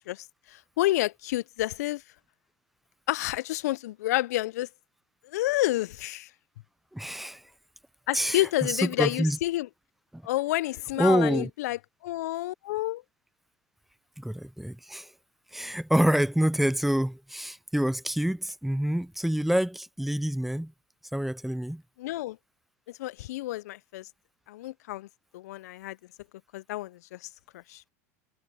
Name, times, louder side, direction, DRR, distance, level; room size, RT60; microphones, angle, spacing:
voice 1, 0.1-2.0 3.1-4.7 5.2-6.3 8.1-9.7 10.2-13.0 22.0-22.4 22.9-24.1 24.5-25.1 25.3-26.0 26.5-27.3 27.5-27.9, left 16 dB, 75° left, 0.5 m, -29 dB
voice 2, 6.9-7.4 8.1-9.4 10.1-10.2 11.0-11.5 14.2-15.1 15.5-20.7 21.1-21.8, equal, ahead, 0.3 m, -27 dB
hypercardioid pair, 100°, 9 cm